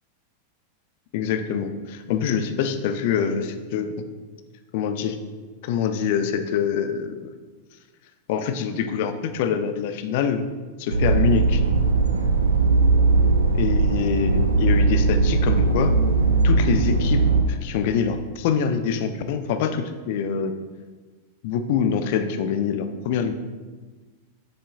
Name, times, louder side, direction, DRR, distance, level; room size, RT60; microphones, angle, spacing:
voice 1, 1.1-3.9 4.7-5.2 5.6-7.3 8.3-10.4 10.8-11.6 13.6-15.9 16.4-17.2 17.5-20.5 21.4-23.3, left 7 dB, 50° left, 9 dB, 0.5 m, -25 dB
sound 1, 10.9-17.4, right 3 dB, 80° right, 0.6 m, -19 dB
7.6 x 6.9 x 2.3 m, 1.3 s
figure-of-eight pair, 90°, 0 cm